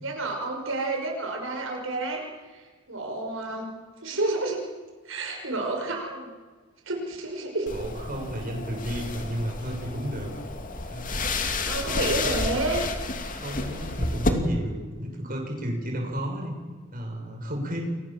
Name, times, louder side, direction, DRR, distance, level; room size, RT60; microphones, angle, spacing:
voice 1, 0.0-2.2 2.5-3.7 4.0-4.6 5.1-6.3 6.9-7.7 11.7-12.9, right 2 dB, 75° right, 1 dB, 5.6 m, -30 dB
sound 1, 7.7-14.3, left 3 dB, 45° left, 2.9 m, -31 dB
voice 2, 7.7-10.3 10.9-11.2 11.8-12.3 13.3-16.5 16.9-17.8, equal, 45° right, 1 dB, 6.8 m, -32 dB
29.5 x 23.0 x 7.6 m, 1.4 s
head